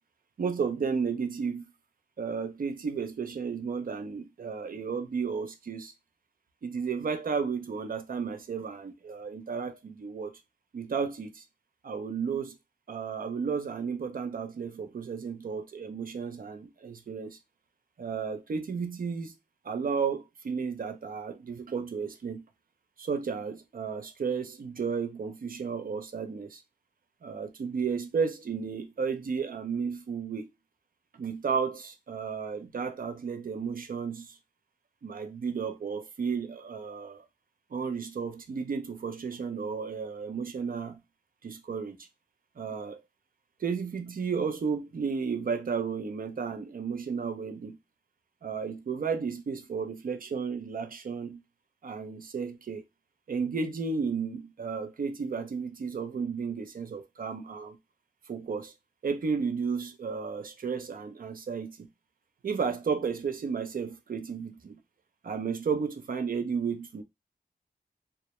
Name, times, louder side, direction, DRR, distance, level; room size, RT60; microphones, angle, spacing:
voice 1, 0.4-1.6 2.2-5.9 6.6-10.4 10.7-11.4 11.8-12.6 12.9-17.4 18.0-19.3 19.6-22.4 23.0-26.6 27.2-30.5 31.1-34.4 35.0-37.2 37.7-41.0 41.4-42.1 42.6-43.0 43.6-47.8 48.4-51.4 51.8-52.9 53.3-57.8 58.3-58.7 59.0-61.9 62.4-64.8 65.2-67.0, right 5 dB, 65° right, 0.5 m, -33 dB
2.1 x 2.1 x 2.8 m
cardioid pair, 55°, 16 cm